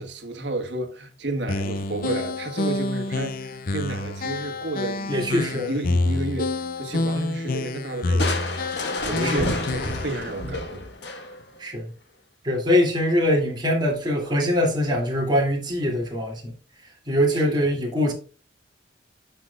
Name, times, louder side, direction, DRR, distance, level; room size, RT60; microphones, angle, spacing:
voice 1, 0.0-10.9 17.3-17.7, right 2 dB, 70° right, 1.5 m, -32 dB
sound 1, 1.5-10.2, left 2 dB, 50° left, 0.6 m, -28 dB
voice 2, 5.1-5.8 9.2-9.4 11.6-11.9 12.4-16.6 17.1-18.1, left 1 dB, 25° right, 2.8 m, -23 dB
Crushing, 8.2-11.6, left 2 dB, 65° left, 1.5 m, -29 dB
11.5 x 5.9 x 2.4 m
head